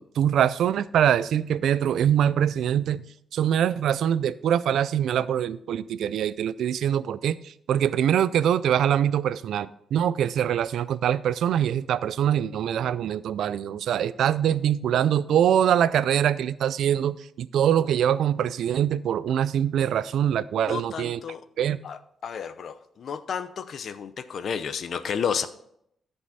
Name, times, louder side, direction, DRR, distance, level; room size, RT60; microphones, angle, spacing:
voice 1, 0.0-3.0 3.3-21.2 21.6-21.8, right 9 dB, 85° right, 0.4 m, -24 dB
voice 2, 20.7-21.4 21.8-25.5, left 7 dB, 60° left, 0.7 m, -31 dB
14.0 x 5.4 x 4.1 m
cardioid pair, 110°, 0 cm